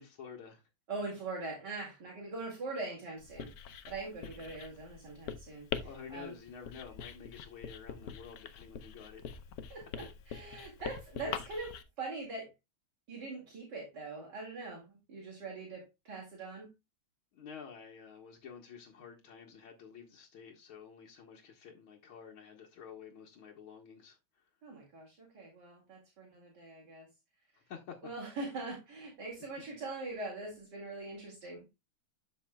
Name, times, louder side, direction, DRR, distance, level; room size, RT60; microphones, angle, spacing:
voice 1, 0.0-0.7 5.8-9.2 17.3-24.4 27.6-28.0, left 6 dB, 80° left, 2.1 m, -50 dB
voice 2, 0.9-6.3 9.7-12.5 13.1-16.7 24.6-27.1 28.0-31.7, right 3 dB, 55° right, 2.9 m, -42 dB
Writing, 3.2-11.8, left 7 dB, 60° left, 1.0 m, -44 dB
12.5 x 5.7 x 2.3 m
omnidirectional pair, 2.2 m